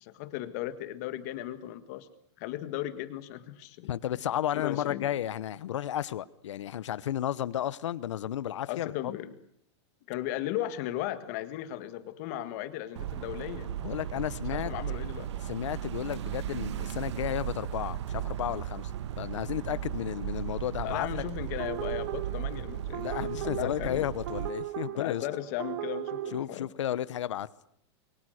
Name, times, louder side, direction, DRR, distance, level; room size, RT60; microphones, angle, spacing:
voice 1, 0.0-2.1 2.4-3.9 4.5-5.1 8.7-9.3 10.1-13.7 14.5-15.3 20.8-24.1 24.9-26.7, left 13 dB, 35° left, 11 dB, 1.7 m, -36 dB
voice 2, 3.9-8.9 13.8-14.7 15.5-18.9 19.2-21.2 22.9-25.3 26.3-27.5, left 11 dB, 90° left, 18 dB, 1.1 m, -33 dB
sound 1, 13.0-24.5, right 10 dB, 70° right, 1.3 m, -36 dB
sound 2, 21.6-26.4, right 12 dB, 50° right, 2.0 m, -37 dB
28.0 x 23.0 x 6.5 m, 0.69 s
supercardioid pair, 180°, 15 cm